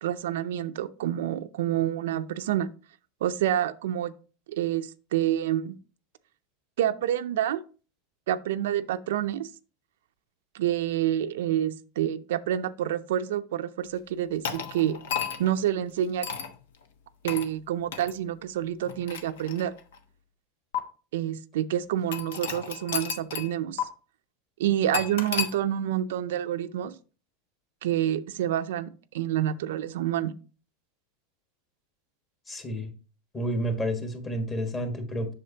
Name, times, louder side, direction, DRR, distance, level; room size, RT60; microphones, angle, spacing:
voice 1, 0.0-2.7 3.2-4.1 4.5-5.8 6.8-7.6 8.3-9.5 10.5-15.0 15.4-16.3 17.2-19.7 21.1-23.9 24.6-26.9 27.8-30.3, right 11 dB, 80° right, 0.5 m, -28 dB
sound 1, 14.4-15.6 16.2-16.5 17.3-17.5 17.9-18.1 18.8-20.0 20.7-20.8 22.1-23.5 23.8-23.9 24.9-25.5, left 7 dB, 90° left, 1.0 m, -32 dB
voice 2, 32.5-32.9 33.3-35.3, equal, 20° left, 1.4 m, -30 dB
7.6 x 6.3 x 2.8 m
supercardioid pair, 140°, 0 cm